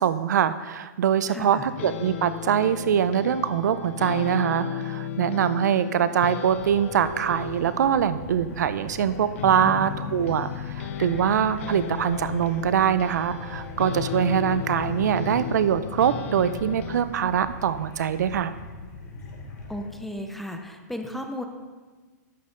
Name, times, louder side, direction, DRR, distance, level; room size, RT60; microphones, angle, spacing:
voice 1, 0.0-18.5, right 9 dB, 70° right, 13 dB, 0.5 m, -23 dB
voice 2, 1.3-1.7 9.6-10.0 19.7-21.4, left 1 dB, ahead, 4 dB, 0.5 m, -35 dB
sound 1, 1.6-17.0, left 9 dB, 45° left, 0.6 m, -35 dB
sound 2, 6.4-19.9, left 2 dB, 75° left, 2.7 m, -40 dB
11.0 x 8.5 x 3.8 m, 1.3 s
hypercardioid pair, 165°, 10 cm